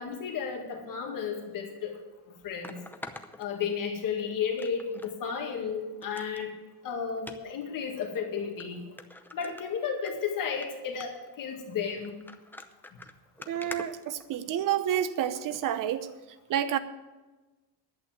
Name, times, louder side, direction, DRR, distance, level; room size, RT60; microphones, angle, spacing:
voice 1, 0.0-2.0 2.4-2.8 3.4-6.5 6.8-8.9 9.3-12.2, left 6 dB, 50° left, 2.0 m, -33 dB
sound 1, 1.6-1.7 2.6-4.1 4.6-5.2 5.5-5.6 6.0-6.5 7.2-7.4 8.1-8.2 8.6-8.7 9.0-10.1 10.5-10.7 11.0-11.3 12.0-14.7 15.5-15.7 16.2-16.3, left 2 dB, 5° left, 0.6 m, -45 dB
voice 2, 13.5-16.1 16.5-16.8, right 10 dB, 50° right, 0.9 m, -29 dB
11.0 x 8.5 x 7.6 m
cardioid pair, 140°, 41 cm